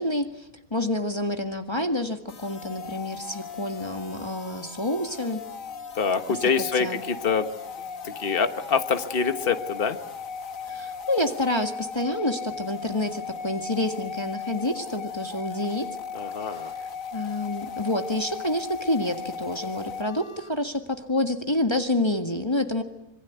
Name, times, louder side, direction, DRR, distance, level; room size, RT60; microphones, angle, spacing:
voice 1, 0.0-5.4 6.3-6.4 6.8-7.0 10.7-15.9 16.4-22.8, left 1 dB, 20° left, 5 dB, 1.8 m, -28 dB
sound 1, 2.3-20.5, left 6 dB, 70° left, 1.7 m, -37 dB
voice 2, 5.9-7.5 8.0-10.0 16.1-16.7, left 5 dB, 40° left, 9 dB, 1.5 m, -25 dB
26.5 x 23.0 x 8.2 m, 0.91 s
omnidirectional pair, 1.5 m